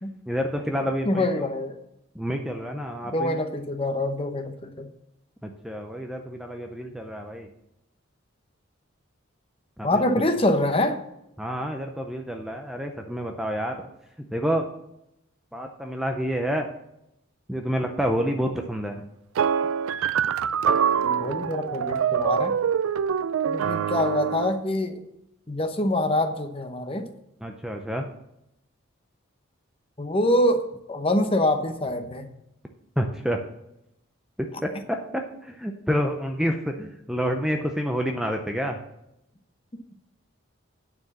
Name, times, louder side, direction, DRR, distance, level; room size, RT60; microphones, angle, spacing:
voice 1, 0.3-1.3 2.2-3.4 5.4-7.5 9.8-10.0 11.4-13.8 14.2-14.7 15.5-16.7 17.5-19.0 27.4-28.1 33.0-33.4 34.4-38.8, equal, ahead, 3 dB, 0.5 m, -28 dB
voice 2, 1.1-1.8 3.1-4.9 9.8-11.0 21.0-22.5 23.5-25.0 25.5-27.1 30.0-30.6 30.9-32.3, left 1 dB, 25° left, 7 dB, 0.8 m, -25 dB
sound 1, 19.3-24.6, right 7 dB, 85° right, 0.4 m, -25 dB
9.3 x 4.7 x 7.1 m, 0.82 s
head